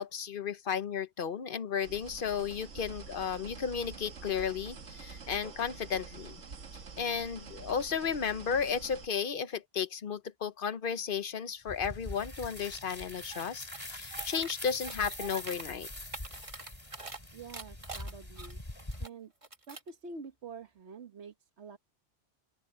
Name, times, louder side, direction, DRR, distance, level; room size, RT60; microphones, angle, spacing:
voice 1, 0.0-6.4 7.0-15.9, left 7 dB, 50° left, 0.9 m, -34 dB
sound 1, 1.8-9.1, right 5 dB, 80° right, 1.8 m, -47 dB
sound 2, 11.7-19.1, left 1 dB, 20° left, 2.8 m, -43 dB
sound 3, 13.3-13.4 13.7-14.5 14.8-15.6 16.0-17.2 17.5-19.1 19.4-19.9, right 3 dB, 25° right, 1.8 m, -44 dB
voice 2, 17.3-18.6 19.0-19.3 19.7-21.8, right 4 dB, 65° right, 1.5 m, -47 dB
open air
omnidirectional pair, 1.2 m